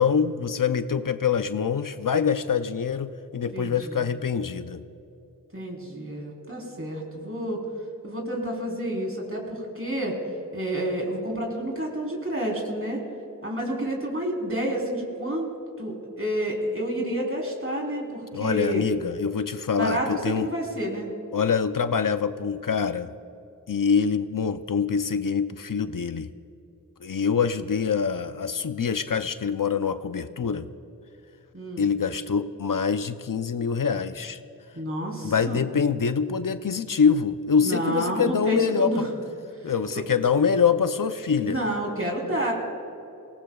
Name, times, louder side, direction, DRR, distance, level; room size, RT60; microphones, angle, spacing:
voice 1, 0.0-4.8 18.3-20.5 21.3-23.1 23.7-26.3 27.0-30.7 31.8-34.4 35.2-39.1 39.6-41.6, left 6 dB, 70° left, 11 dB, 0.6 m, -25 dB
voice 2, 3.5-4.0 5.5-7.6 8.0-10.2 10.5-13.0 13.4-15.5 15.8-18.8 19.7-21.1 31.5-31.9 34.7-35.6 37.6-39.1 39.5-40.0 41.4-42.5, right 1 dB, 40° right, -1 dB, 3.7 m, -29 dB
26.0 x 18.5 x 2.3 m, 2.9 s
wide cardioid pair, 50°, 34 cm